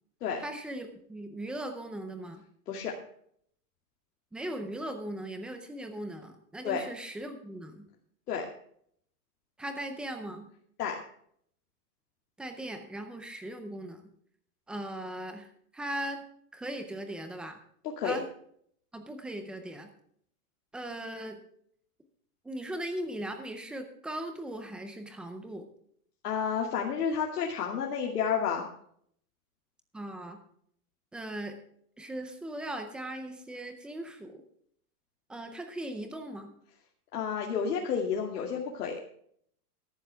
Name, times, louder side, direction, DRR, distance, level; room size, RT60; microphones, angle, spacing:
voice 1, 0.4-2.4 4.3-7.9 9.6-10.5 12.4-14.0 14.7-16.2 16.5-17.6 18.0-18.2 18.9-19.9 20.7-21.4 22.4-25.6 29.9-30.4 31.1-31.6 32.0-34.4 35.3-36.5, right 1 dB, ahead, 6 dB, 0.4 m, -38 dB
voice 2, 26.2-28.6 37.1-39.0, left 7 dB, 80° left, -1 dB, 2.5 m, -30 dB
14.0 x 12.0 x 3.4 m, 0.65 s
supercardioid pair, 155°, 45 cm